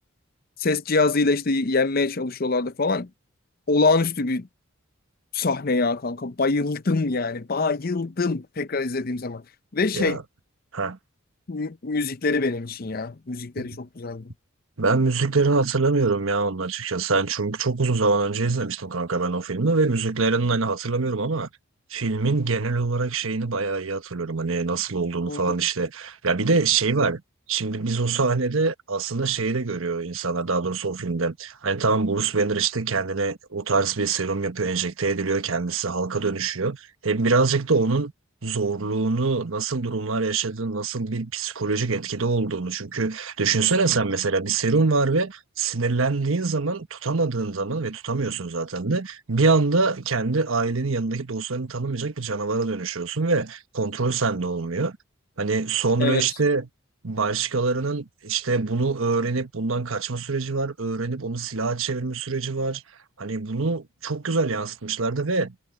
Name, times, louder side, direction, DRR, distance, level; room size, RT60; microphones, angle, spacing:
voice 1, 0.6-3.1 3.7-4.5 5.3-9.4 9.7-10.2 11.5-14.3 25.3-25.5 56.0-56.3, left 3 dB, 45° left, 0.6 m, -24 dB
voice 2, 14.8-21.5 21.9-27.2 27.5-38.1 38.4-55.0 55.4-56.7 57.0-62.8 63.2-65.5, right 4 dB, 70° right, 1.2 m, -24 dB
head